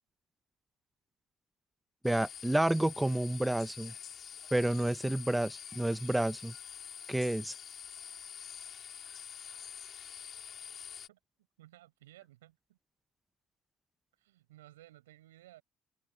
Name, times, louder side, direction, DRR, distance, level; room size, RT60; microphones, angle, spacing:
sound 1, 2.0-11.1, left 8 dB, 50° left, 3.8 m, -46 dB
voice 1, 2.0-3.9 4.5-6.5 7.1-7.5, right 1 dB, 10° right, 1.2 m, -30 dB
voice 2, 11.6-12.8 14.2-15.6, right 15 dB, 85° right, 6.2 m, -57 dB
hypercardioid pair, 60°, 0 cm